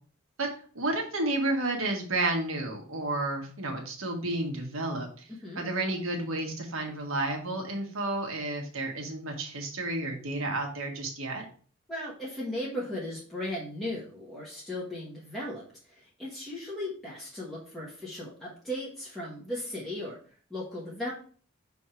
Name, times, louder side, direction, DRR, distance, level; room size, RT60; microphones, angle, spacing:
voice 1, 0.7-5.3 5.5-11.4, right 2 dB, 70° right, 2 dB, 1.6 m, -31 dB
voice 2, 11.9-21.1, left 1 dB, ahead, -7 dB, 1.4 m, -37 dB
6.4 x 3.6 x 4.4 m, 0.43 s
head